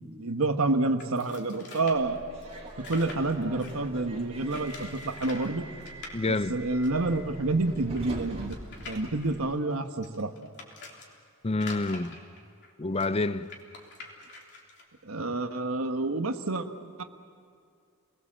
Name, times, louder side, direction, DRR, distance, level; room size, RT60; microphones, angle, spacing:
voice 1, 0.2-2.2 2.8-5.7 6.3-8.6 8.9-10.3 15.0-16.6 17.0-17.1, right 2 dB, 75° right, 1.3 m, -28 dB
sound 1, 1.0-3.9 4.5-5.5 5.8-6.1 6.8-6.9 7.1-7.2 7.8-11.1 11.5-14.8, left 3 dB, 55° left, 3.5 m, -45 dB
Subway metro underground, 1.9-9.5, right 1 dB, 30° right, 2.6 m, -44 dB
voice 2, 6.1-6.6 11.4-12.2 12.8-13.6, left 2 dB, 30° left, 0.6 m, -28 dB
29.0 x 20.5 x 7.5 m
head